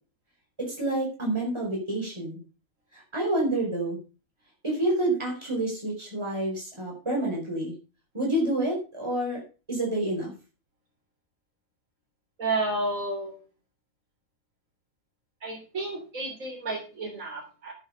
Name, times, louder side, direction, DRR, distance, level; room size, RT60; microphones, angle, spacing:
voice 1, 0.6-2.4 2.9-4.0 4.6-7.7 8.1-9.4 9.7-10.3, right 1 dB, 20° right, -2 dB, 4.7 m, -28 dB
voice 2, 12.4-13.4 15.4-17.7, right 2 dB, 60° right, -2 dB, 3.8 m, -31 dB
11.0 x 9.2 x 5.6 m, 0.34 s
omnidirectional pair, 1.5 m